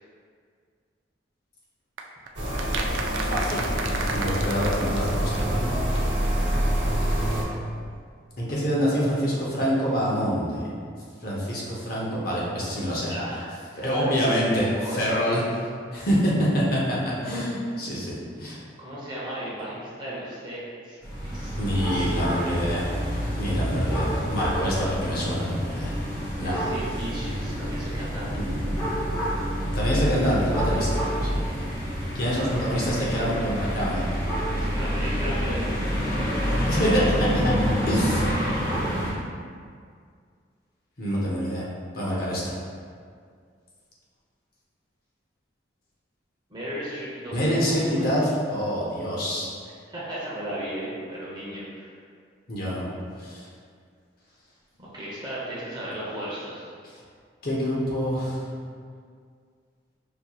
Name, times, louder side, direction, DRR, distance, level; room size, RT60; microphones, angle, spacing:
sound 1, 2.0-6.0 6.2-6.3 6.5-6.6, right 4 dB, 85° right, 0.4 m, -33 dB
sound 2, 2.3-7.4, equal, 70° right, 0.8 m, -26 dB
voice 1, 3.3-3.6 4.1-6.0 8.4-10.7 11.2-13.1 13.8-15.4 15.9-17.0 17.2-18.6 21.5-22.8 23.3-25.9 26.4-26.5 28.4-28.6 29.7-31.5 32.1-34.0 36.7-37.5 37.9-38.3 41.0-41.6 41.9-42.5 47.3-49.5 52.5-52.8 53.2-53.4 57.4-58.4, equal, 50° left, -6 dB, 0.8 m, -26 dB
voice 2, 13.1-14.1 14.5-15.4 18.8-22.1 26.4-28.5 30.8-31.2 34.6-35.7 46.5-48.1 49.8-52.0 54.8-56.7, right 1 dB, 25° right, -8 dB, 0.8 m, -36 dB
sound 3, 21.0-39.1, equal, 20° left, 0.9 m, -27 dB
5.2 x 3.0 x 2.4 m, 2.1 s
head